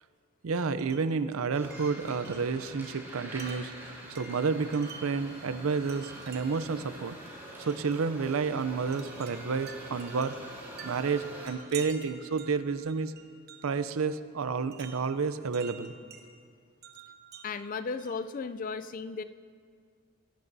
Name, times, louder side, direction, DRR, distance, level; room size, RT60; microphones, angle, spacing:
voice 1, 0.4-7.2 7.6-10.3 10.8-13.1 13.6-15.9, right 5 dB, 80° right, 12 dB, 0.5 m, -30 dB
Wind chime, 0.8-1.2 1.7-5.3 5.9-6.7 7.6-7.9 8.9-13.9 14.7-16.3 16.8-18.4, right 6 dB, 50° right, 1.0 m, -49 dB
sound 1, 1.5-11.5, right 1 dB, 10° right, 3.4 m, -45 dB
voice 2, 17.4-19.2, left 4 dB, 40° left, 12 dB, 0.3 m, -35 dB
22.5 x 11.5 x 2.7 m, 2.1 s
head